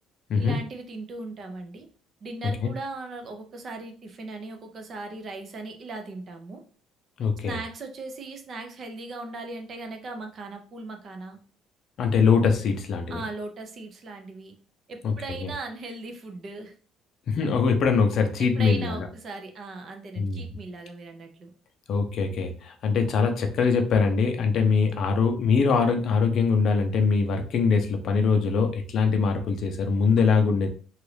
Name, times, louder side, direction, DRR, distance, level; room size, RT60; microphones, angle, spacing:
voice 1, 0.4-1.9 2.2-6.6 7.4-11.4 13.1-14.5 14.9-16.7 18.4-21.5, right 3 dB, 35° right, 4 dB, 0.6 m, -38 dB
voice 2, 7.2-7.6 12.0-13.2 15.0-15.1 15.4-15.5 17.3-19.1 20.2-20.4 21.9-30.7, left 5 dB, 45° left, 5 dB, 0.5 m, -23 dB
3.0 x 2.5 x 3.2 m, 0.41 s
cardioid pair, 165°, 0 cm